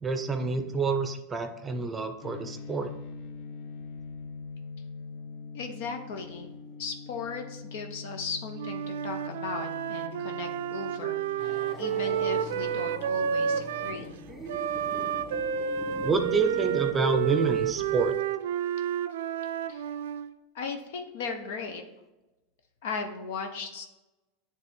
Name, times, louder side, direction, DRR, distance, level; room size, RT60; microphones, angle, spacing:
voice 1, 0.0-2.9 16.0-18.1, right 4 dB, 15° right, 7 dB, 0.6 m, -28 dB
sound 1, 2.2-17.0, left 4 dB, 55° left, 0.4 m, -44 dB
voice 2, 5.5-14.1 19.7-19.9 20.5-21.8 22.8-23.8, left 5 dB, 75° left, 5 dB, 0.8 m, -37 dB
Wind instrument woodwind instrument, 8.5-14.0 14.5-20.3, right 9 dB, 85° right, 0.4 m, -30 dB
sound 2, 11.4-18.1, equal, 5° left, 1.8 m, -43 dB
9.1 x 3.4 x 3.5 m, 1.1 s
supercardioid pair, 140°, 0 cm